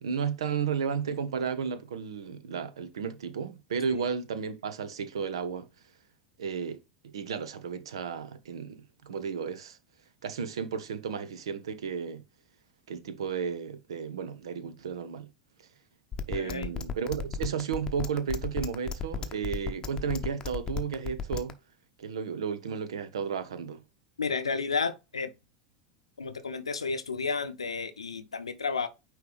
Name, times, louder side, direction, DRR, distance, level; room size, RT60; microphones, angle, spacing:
voice 1, 0.0-5.7 6.4-6.8 7.0-9.8 10.2-12.2 12.9-15.3 16.3-21.5 22.0-23.8, right 6 dB, 65° right, 0.8 m, -33 dB
sound 1, 16.1-21.5, left 6 dB, 25° left, 0.8 m, -33 dB
voice 2, 16.3-16.7 24.2-25.3 26.2-28.9, left 4 dB, 80° left, 0.7 m, -32 dB
9.2 x 3.2 x 3.4 m
figure-of-eight pair, 80°, 3 cm